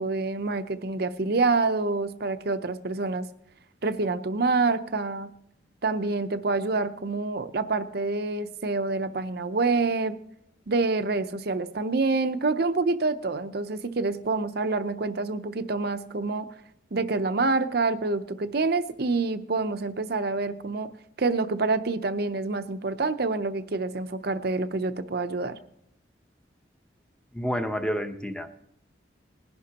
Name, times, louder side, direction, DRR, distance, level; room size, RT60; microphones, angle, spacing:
voice 1, 0.0-3.3 3.8-5.3 5.8-10.2 10.7-16.5 16.9-20.9 21.2-25.6, right 3 dB, 55° right, 11 dB, 0.7 m, -27 dB
voice 2, 27.3-28.5, equal, 5° left, 7 dB, 0.9 m, -29 dB
19.5 x 11.0 x 2.9 m, 0.75 s
head